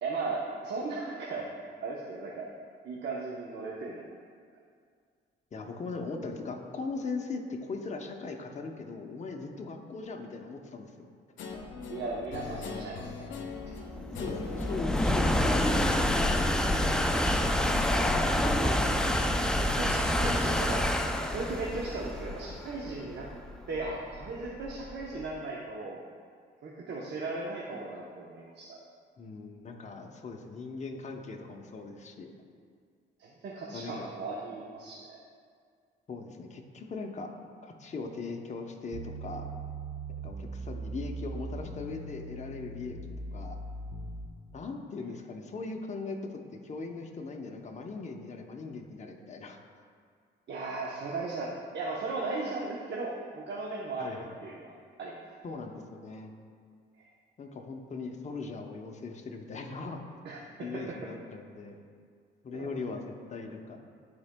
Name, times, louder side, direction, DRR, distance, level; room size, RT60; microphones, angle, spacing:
voice 1, 0.0-1.5 1.8-2.5 2.8-4.0 11.9-13.3 19.5-20.8 21.3-23.3 23.7-26.0 26.6-28.8 33.2-35.2 50.5-55.2 57.0-57.1 60.2-60.8 62.5-62.7, right 3 dB, 60° right, -4 dB, 0.9 m, -37 dB
voice 2, 5.5-11.1 14.2-16.3 16.6-18.6 29.2-32.3 33.7-34.1 36.1-37.3 37.6-39.5 40.2-43.0 43.3-43.6 44.5-49.6 54.0-54.4 55.4-56.3 57.4-60.0 60.6-61.8 62.4-63.8, left 3 dB, 35° left, 2 dB, 0.8 m, -39 dB
Guitar, 11.4-17.2, left 5 dB, 75° left, 0.7 m, -42 dB
sound 1, 11.9-25.2, left 1 dB, 5° left, 0.4 m, -28 dB
sound 2, 38.9-44.3, right 2 dB, 40° right, 1.2 m, -40 dB
12.5 x 4.4 x 2.2 m, 2.1 s
cardioid pair, 90°, 20 cm